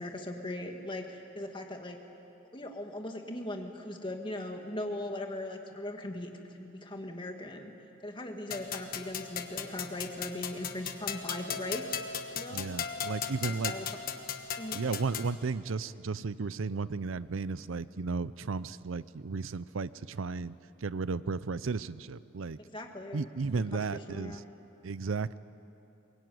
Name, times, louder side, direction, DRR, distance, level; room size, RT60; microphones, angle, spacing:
voice 1, 0.0-2.0 2.5-7.7 8.0-12.0 12.4-12.7 13.4-13.9 14.6-14.8 22.6-23.3 23.5-23.6 24.1-24.4, left 1 dB, 25° left, 3 dB, 1.9 m, -39 dB
sound 1, 8.5-15.3, left 7 dB, 45° left, 1.3 m, -37 dB
voice 2, 12.5-13.7 14.7-20.5 20.8-22.6 23.1-24.4 24.8-25.4, right 4 dB, 75° right, 17 dB, 0.6 m, -34 dB
22.5 x 21.5 x 9.3 m, 2.9 s
head